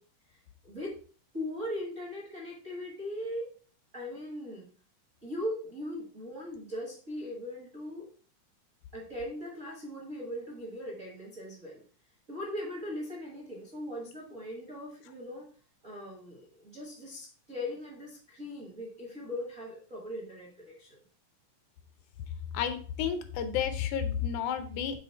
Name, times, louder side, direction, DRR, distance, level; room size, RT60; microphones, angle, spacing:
voice 1, 0.3-1.0 1.3-3.5 3.9-4.7 5.2-8.1 8.9-11.8 12.3-15.5 15.8-21.0, left 1 dB, 55° right, -3 dB, 0.8 m, -39 dB
voice 2, 22.5-25.0, left 8 dB, 80° left, 9 dB, 2.0 m, -31 dB
6.3 x 3.7 x 4.3 m, 0.42 s
omnidirectional pair, 3.6 m